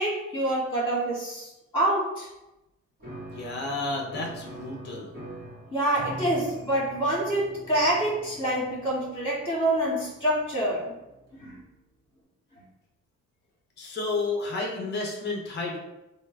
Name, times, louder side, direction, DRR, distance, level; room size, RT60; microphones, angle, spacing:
voice 1, 0.0-2.3 5.7-10.8 11.3-11.6, right 1 dB, 15° left, -6 dB, 1.3 m, -26 dB
Piano, 3.0-11.5, right 1 dB, 30° right, 1.3 m, -44 dB
voice 2, 3.3-5.2 13.8-15.8, left 3 dB, 35° left, -1 dB, 0.6 m, -31 dB
3.1 x 2.0 x 2.2 m, 0.95 s
cardioid pair, 90°, 30 cm